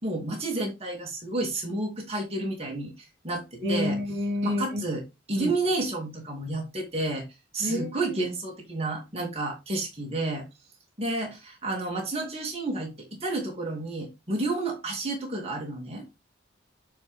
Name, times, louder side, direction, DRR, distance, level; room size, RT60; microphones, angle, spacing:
voice 1, 0.0-4.0 4.4-7.2 7.5-10.5 11.0-16.0, right 2 dB, 35° right, 0 dB, 2.7 m, -31 dB
voice 2, 3.6-4.8 5.4-5.5 7.6-7.9, left 1 dB, 70° right, 2 dB, 3.2 m, -28 dB
9.2 x 4.5 x 3.7 m, 0.23 s
head